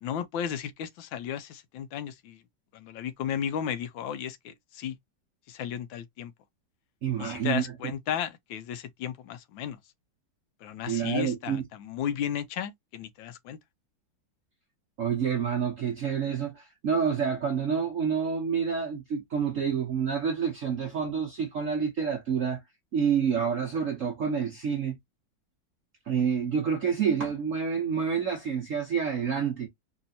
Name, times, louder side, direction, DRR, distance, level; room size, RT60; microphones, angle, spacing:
voice 1, 0.0-2.4 2.7-5.0 5.5-6.3 7.2-9.8 10.6-13.6, left 9 dB, 75° left, 1.3 m, -34 dB
voice 2, 7.0-7.9 10.9-11.6 15.0-22.6 22.9-25.0 26.1-29.7, right 7 dB, 55° right, 0.9 m, -28 dB
4.2 x 2.7 x 2.6 m
omnidirectional pair, 2.2 m